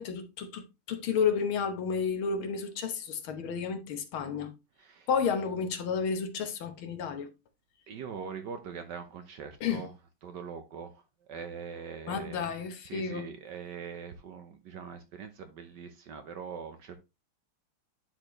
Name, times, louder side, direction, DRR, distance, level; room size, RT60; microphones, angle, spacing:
voice 1, 0.0-4.5 5.1-7.3 9.6-9.9 12.1-13.3, left 6 dB, 70° left, 1.8 m, -31 dB
voice 2, 7.9-9.9 10.2-10.9 11.3-12.5 12.9-17.0, right 6 dB, 65° right, 1.2 m, -42 dB
9.9 x 4.3 x 3.0 m
omnidirectional pair, 2.4 m